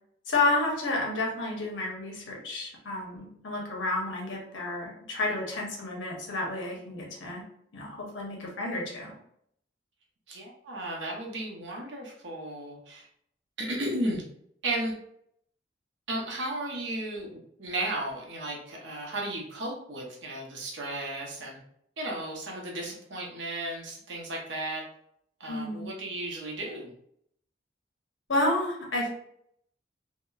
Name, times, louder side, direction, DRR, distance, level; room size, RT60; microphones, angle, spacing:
voice 1, 0.3-7.4 7.7-9.2 25.5-25.9 28.3-29.1, left 2 dB, 85° left, -1 dB, 0.8 m, -30 dB
voice 2, 10.3-13.1 13.6-14.2 14.6-14.9 16.1-21.6 22.0-24.8 25.4-26.9, right 1 dB, 80° right, -1 dB, 0.7 m, -34 dB
2.8 x 2.0 x 2.3 m, 0.69 s
head